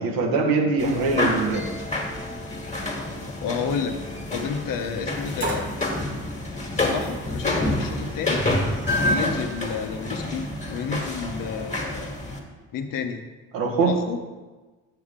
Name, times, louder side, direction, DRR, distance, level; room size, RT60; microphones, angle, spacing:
voice 1, 0.0-1.7 13.5-13.9, right 3 dB, 80° right, 0 dB, 1.5 m, -22 dB
sound 1, 0.8-12.4, left 2 dB, 20° left, 1.8 m, -28 dB
voice 2, 3.3-4.0 4.3-5.7 6.7-8.4 9.0-12.1 12.7-13.2 13.8-14.2, left 6 dB, 65° left, 6 dB, 0.9 m, -30 dB
sound 2, 5.4-5.8 7.0-7.1 7.6-9.4, right 1 dB, 30° right, 1.5 m, -31 dB
7.5 x 6.4 x 3.7 m, 1.3 s
supercardioid pair, 70°, 35 cm